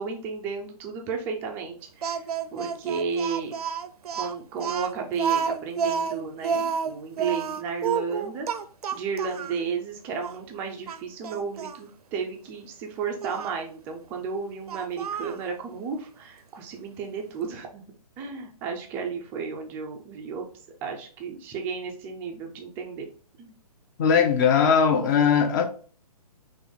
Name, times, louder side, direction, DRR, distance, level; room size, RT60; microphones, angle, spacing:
voice 1, 0.0-2.2 2.5-3.5 4.1-8.5 8.9-17.8 18.2-20.5 20.8-23.1 23.4-23.5, right 5 dB, 10° right, 0.3 m, -33 dB
Speech, 2.0-9.6 10.2-10.4 10.9-11.8 13.2-13.5 14.7-15.4, right 6 dB, 70° right, 0.4 m, -30 dB
voice 2, 24.0-25.6, left 7 dB, 30° left, 0.6 m, -20 dB
3.7 x 3.0 x 3.5 m
hypercardioid pair, 145°, 20 cm